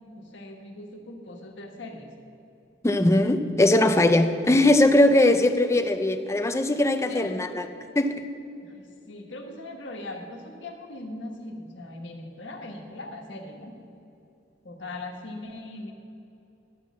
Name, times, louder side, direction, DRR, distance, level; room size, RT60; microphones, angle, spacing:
voice 1, 0.0-2.1 7.0-7.3 8.6-13.8 14.6-15.9, left 2 dB, 75° left, 2 dB, 1.4 m, -40 dB
voice 2, 2.8-7.7 8.0-8.1, left 1 dB, 15° left, 7 dB, 0.6 m, -20 dB
11.5 x 6.1 x 7.3 m, 2.8 s
head